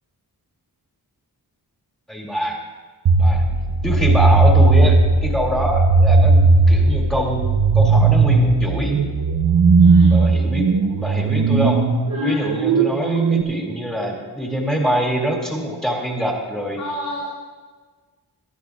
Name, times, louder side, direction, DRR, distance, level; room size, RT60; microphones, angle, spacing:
voice 1, 2.1-2.6 3.2-3.5 3.8-7.4 7.7-9.0 10.1-10.6 11.0-11.8 12.2-16.8, equal, ahead, -2 dB, 2.6 m, -24 dB
sound 1, 3.1-13.4, right 3 dB, 75° right, 1.0 m, -16 dB
voice 2, 9.8-10.2 12.1-12.5 16.8-17.3, equal, 60° left, -7 dB, 3.6 m, -31 dB
24.5 x 13.0 x 2.5 m, 1.4 s
wide cardioid pair, 165°, 38 cm